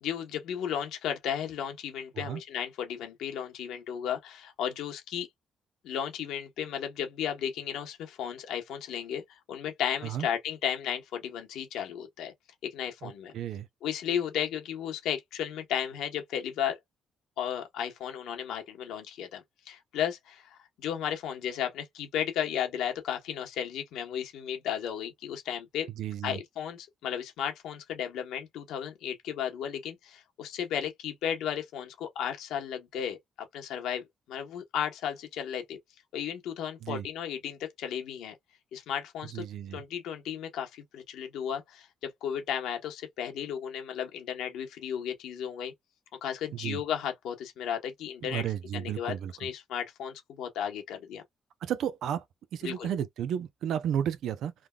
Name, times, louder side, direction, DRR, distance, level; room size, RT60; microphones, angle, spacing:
voice 1, 0.0-5.3 5.8-12.3 12.6-13.3 13.8-16.8 17.4-25.9 26.2-33.2 33.5-35.8 36.1-38.3 38.7-39.4 39.7-45.7 46.2-48.4 48.7-51.2 52.6-52.9, left 9 dB, 85° left, 1.0 m, -34 dB
voice 2, 13.0-13.7 26.0-26.4 36.8-37.1 39.3-39.8 46.5-46.8 48.2-49.5 51.6-52.2 52.5-54.5, right 9 dB, 75° right, 0.5 m, -33 dB
3.5 x 2.3 x 2.3 m
cardioid pair, 90°, 0 cm